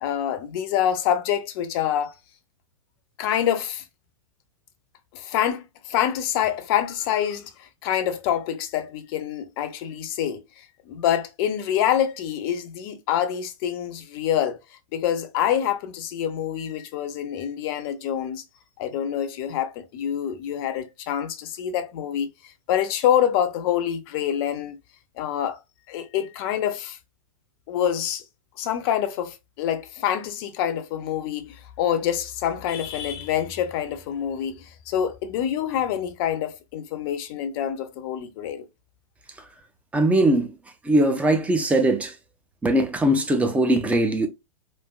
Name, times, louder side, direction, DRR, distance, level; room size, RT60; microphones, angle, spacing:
voice 1, 0.0-2.1 3.2-3.8 5.1-10.4 10.9-14.6 14.9-18.4 18.8-22.3 22.7-24.8 25.2-25.6 25.9-27.0 27.7-28.2 28.6-38.7, left 10 dB, 40° left, 0.6 m, -26 dB
voice 2, 39.9-40.5 40.9-42.1 42.6-44.3, right 1 dB, 5° right, 0.4 m, -20 dB
3.2 x 2.5 x 2.3 m
figure-of-eight pair, 105°, 18 cm